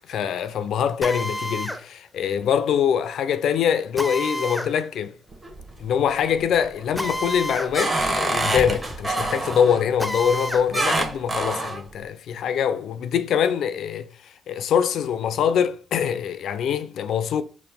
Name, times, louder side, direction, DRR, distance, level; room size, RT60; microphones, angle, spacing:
voice 1, 0.1-5.1 5.8-17.4, left 8 dB, 70° left, 0.4 m, -24 dB
Drill, 1.0-1.8 4.0-4.7 6.9-7.7 8.1-8.2 10.0-10.7, equal, 5° left, 0.6 m, -29 dB
sound 1, 5.3-6.0 6.4-6.8 7.3-9.9 10.7-11.8, right 2 dB, 20° right, 0.9 m, -26 dB
4.2 x 2.4 x 3.4 m
cardioid pair, 90°, 0 cm